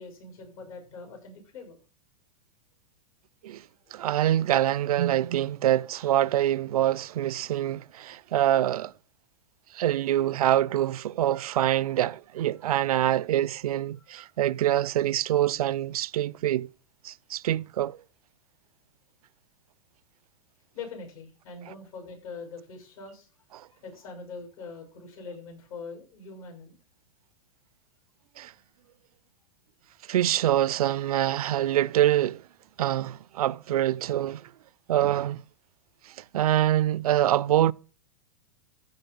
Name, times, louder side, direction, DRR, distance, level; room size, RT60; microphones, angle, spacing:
voice 1, 0.0-1.8 20.7-23.3 23.8-26.8, left 4 dB, 70° left, 7.1 m, -42 dB
voice 2, 3.9-8.9 9.7-16.7 17.0-18.0 23.5-23.7 28.4-28.5 30.1-32.4 32.8-34.5 34.9-35.4 36.3-37.7, right 12 dB, 90° right, 0.4 m, -25 dB
14.5 x 5.3 x 5.4 m
hypercardioid pair, 135°, 18 cm